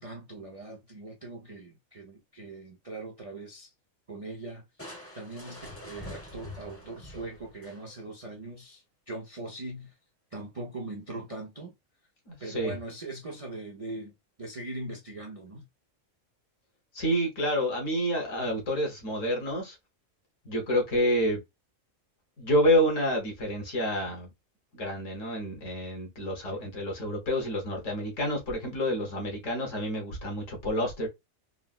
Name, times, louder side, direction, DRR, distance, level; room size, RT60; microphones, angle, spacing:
voice 1, 0.0-3.7 4.1-9.9 10.3-11.7 12.4-14.1 14.4-15.7 26.5-26.6, right 2 dB, 45° right, 0.4 m, -41 dB
Crushing, 4.8-8.2, left 1 dB, 10° left, 0.8 m, -45 dB
voice 2, 12.3-12.8 16.9-19.8 20.4-21.4 22.4-24.3 24.7-31.1, equal, 65° left, 1.5 m, -28 dB
3.9 x 2.1 x 2.3 m
omnidirectional pair, 1.5 m